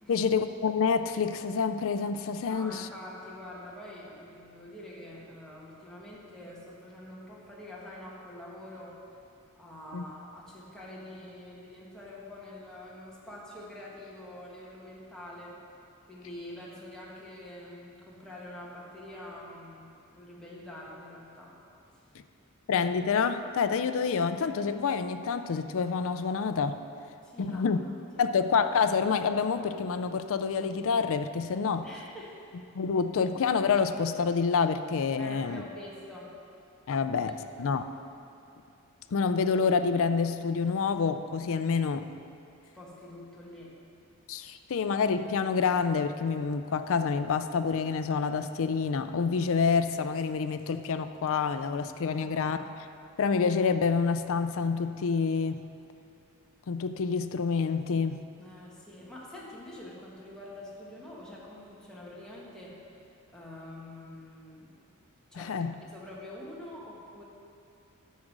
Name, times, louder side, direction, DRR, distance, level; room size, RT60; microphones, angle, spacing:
voice 1, 0.1-2.9 9.9-10.0 22.7-26.8 27.4-27.8 28.2-31.9 32.7-35.6 36.9-37.9 39.1-42.1 44.3-52.6 53.2-55.7 56.7-58.2 65.3-65.8, left 5 dB, 65° left, 9 dB, 0.4 m, -27 dB
voice 2, 2.4-9.0 9.6-15.6 16.1-21.6 27.2-27.7 28.1-28.3 31.8-32.5 35.2-36.4 37.3-37.7 42.7-43.7 58.4-62.8 63.3-64.7 65.3-67.2, left 1 dB, 5° left, -6 dB, 1.7 m, -46 dB
9.9 x 6.5 x 6.1 m, 2.6 s
head